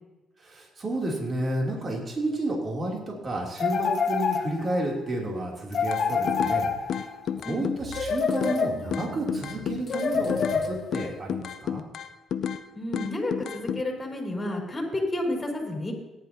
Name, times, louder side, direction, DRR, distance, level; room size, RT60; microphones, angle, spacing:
voice 1, 0.4-11.8, right 1 dB, 40° right, -1 dB, 2.8 m, -31 dB
sound 1, 3.6-4.9 5.7-7.2 7.9-9.1 9.9-11.1, left 5 dB, 50° left, 1.4 m, -27 dB
sound 2, 5.9-6.6 6.9-8.6 8.9-10.6 10.9-12.6 12.9-13.8, left 8 dB, 65° left, 0.5 m, -31 dB
sound 3, 6.1-6.8 7.8-8.1 8.5-10.8, right 5 dB, 75° right, 1.5 m, -42 dB
voice 2, 12.7-15.9, left 1 dB, 20° left, -1 dB, 4.2 m, -30 dB
18.0 x 10.5 x 2.8 m, 1.1 s
cardioid pair, 90°, 0 cm